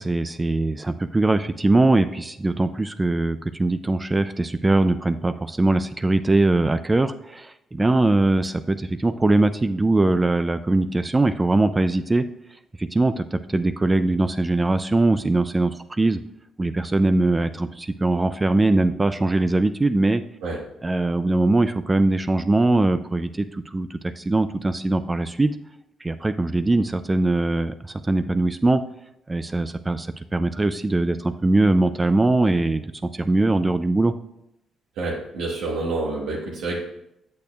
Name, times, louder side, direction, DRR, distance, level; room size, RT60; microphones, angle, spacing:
voice 1, 0.0-12.2 12.8-16.2 16.6-20.2 20.8-25.6 26.0-28.8 29.3-34.1, right 2 dB, 20° right, 11 dB, 0.3 m, -21 dB
voice 2, 35.0-36.8, right 2 dB, 90° right, -5 dB, 1.2 m, -28 dB
8.4 x 6.6 x 2.3 m, 0.81 s
cardioid pair, 90°, 0 cm